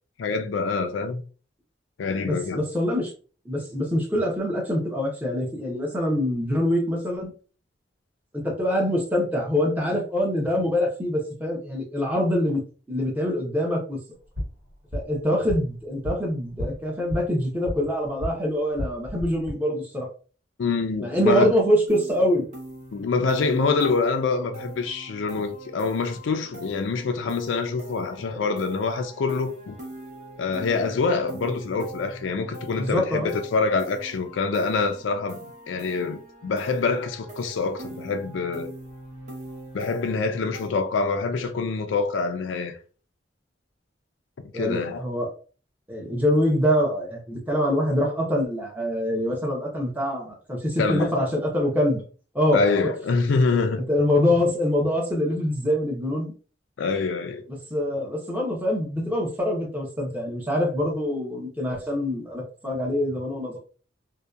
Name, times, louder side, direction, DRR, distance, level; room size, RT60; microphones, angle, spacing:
voice 1, 0.2-1.2 2.0-2.6 20.6-21.5 22.9-29.8 30.4-38.7 39.7-42.8 44.5-45.0 50.8-51.3 52.5-53.8 56.8-57.4, left 4 dB, 85° left, 0.4 m, -25 dB
voice 2, 2.2-3.1 3.5-7.3 8.3-12.6 12.9-14.0 14.9-20.1 21.0-22.5 28.3-28.4 32.7-33.3 44.5-45.3 45.9-52.0 52.3-52.6 53.8-56.3 57.7-63.6, left 1 dB, 10° right, 0.7 m, -24 dB
sound 1, 14.1-18.4 18.7-19.5, equal, 75° right, 1.4 m, -34 dB
sound 2, 21.9-40.7, right 1 dB, 40° right, 0.8 m, -42 dB
2.7 x 2.2 x 2.2 m
head